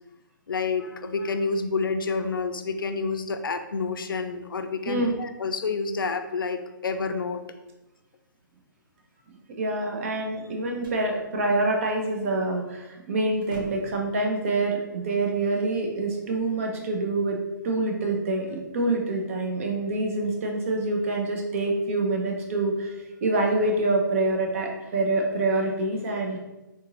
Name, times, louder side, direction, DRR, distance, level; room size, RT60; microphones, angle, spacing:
voice 1, 0.5-7.4, left 4 dB, 90° left, 8 dB, 0.4 m, -29 dB
voice 2, 9.6-17.4 17.6-26.4, right 2 dB, 40° right, 1 dB, 0.6 m, -26 dB
sound 1, 10.3-11.1 12.7-12.9 13.2-14.1, equal, 90° right, 1.0 m, -43 dB
3.7 x 2.5 x 2.9 m, 1.0 s
hypercardioid pair, 155°, 11 cm